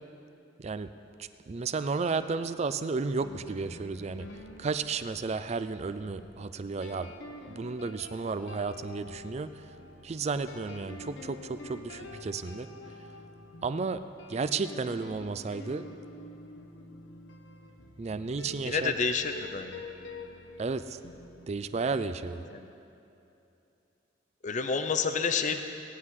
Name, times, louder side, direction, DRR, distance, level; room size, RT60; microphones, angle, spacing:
voice 1, 0.6-0.9 1.2-4.3 4.6-7.1 7.5-9.6 10.0-12.7 13.6-14.0 14.3-15.9 18.0-18.9 20.6-21.0 21.5-22.4, right 4 dB, 35° right, 12 dB, 0.4 m, -33 dB
sound 1, 3.2-22.0, left 2 dB, 70° left, 0.8 m, -47 dB
voice 2, 18.6-19.8 22.5-22.7 24.4-25.6, left 5 dB, 40° left, 8 dB, 0.5 m, -29 dB
18.0 x 9.6 x 3.7 m, 2.8 s
head